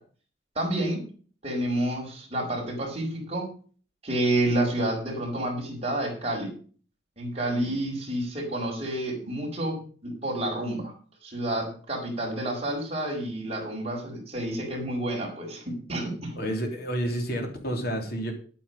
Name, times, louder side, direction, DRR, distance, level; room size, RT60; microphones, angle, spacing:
voice 1, 0.5-1.1 1.4-3.5 4.0-6.5 7.2-10.9 11.2-16.4, right 1 dB, 35° right, 0 dB, 4.8 m, -29 dB
voice 2, 16.4-18.3, right 1 dB, 60° left, 3 dB, 3.2 m, -30 dB
11.0 x 9.2 x 5.4 m, 0.42 s
head